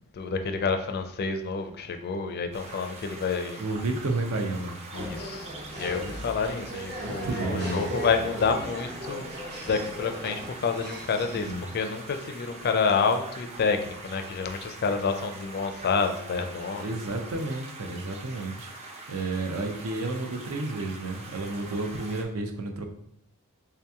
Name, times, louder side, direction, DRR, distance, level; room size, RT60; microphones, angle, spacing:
voice 1, 0.1-3.6 4.9-9.3 9.6-16.9, left 5 dB, 45° left, 6 dB, 0.4 m, -28 dB
sound 1, 2.5-22.2, right 2 dB, 30° right, 0.5 m, -44 dB
voice 2, 3.6-4.8 7.0-7.9 11.3-11.6 16.8-18.7 19.1-22.8, right 2 dB, 75° right, 5 dB, 0.6 m, -31 dB
sound 2, 4.9-11.6, right 1 dB, 50° right, 0.8 m, -38 dB
3.3 x 2.9 x 3.5 m, 0.70 s
head